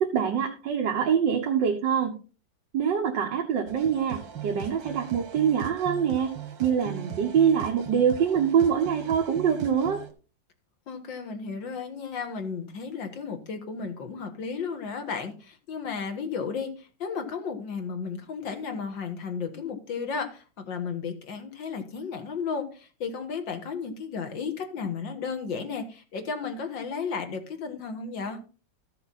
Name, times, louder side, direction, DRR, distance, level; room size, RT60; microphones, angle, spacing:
voice 1, 0.0-2.2 2.7-6.3 6.6-10.0, right 7 dB, 70° right, 3 dB, 1.9 m, -24 dB
sound 1, 3.7-10.1, right 8 dB, 90° right, 2.1 m, -39 dB
voice 2, 10.9-28.4, left 5 dB, 85° left, 5 dB, 2.3 m, -34 dB
14.0 x 6.8 x 4.2 m, 0.36 s
omnidirectional pair, 2.0 m